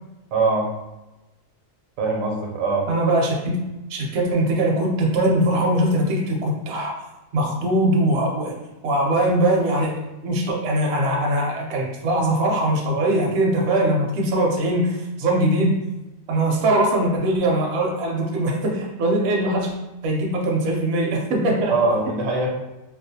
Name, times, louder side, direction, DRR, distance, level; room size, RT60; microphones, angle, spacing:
voice 1, 0.3-0.7 2.0-2.9 21.7-22.5, right 3 dB, 80° right, -1 dB, 1.0 m, -22 dB
voice 2, 2.9-3.5 3.9-6.9 7.3-8.5 8.8-15.7 16.3-19.7 20.0-21.7, right 1 dB, 65° right, 0 dB, 0.7 m, -21 dB
2.4 x 2.1 x 2.7 m, 0.99 s
omnidirectional pair, 1.4 m